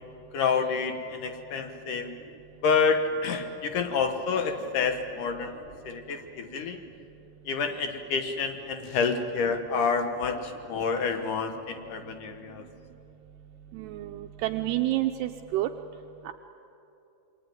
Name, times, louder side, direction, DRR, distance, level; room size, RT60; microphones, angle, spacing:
voice 1, 0.3-2.1 2.6-5.5 5.8-6.8 7.5-12.6, left 5 dB, 65° left, 6 dB, 2.3 m, -28 dB
voice 2, 13.7-15.7 16.3-16.4, right 15 dB, 80° right, 5 dB, 2.7 m, -29 dB
27.5 x 23.5 x 9.3 m, 2.9 s
omnidirectional pair, 4.9 m